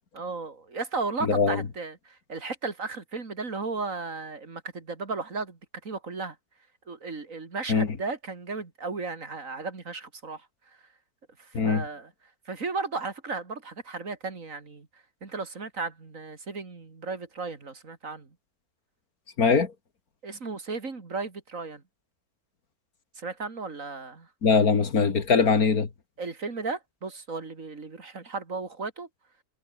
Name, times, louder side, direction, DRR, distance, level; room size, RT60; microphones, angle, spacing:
voice 1, 0.1-6.4 6.9-10.5 11.4-12.1 12.5-14.9 15.2-18.3 20.2-21.8 23.2-24.3 26.2-29.1, right 4 dB, 55° right, 3.0 m, -35 dB
voice 2, 1.2-1.6 7.7-7.9 11.5-11.8 19.4-19.7 24.4-25.9, left 5 dB, 70° left, 2.6 m, -22 dB
omnidirectional pair, 1.6 m